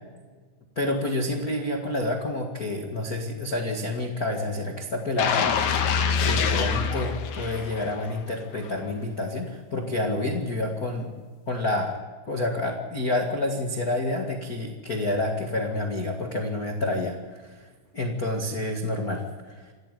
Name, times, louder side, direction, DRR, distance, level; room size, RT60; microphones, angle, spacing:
voice 1, 0.7-5.8 6.2-11.1 11.5-12.0 12.3-17.6 17.9-19.7, left 2 dB, 90° left, 1 dB, 0.8 m, -29 dB
sound 1, 5.2-8.1 8.5-8.7, left 6 dB, 65° left, 3.4 m, -25 dB
27.0 x 13.5 x 9.3 m, 1.4 s
omnidirectional pair, 5.4 m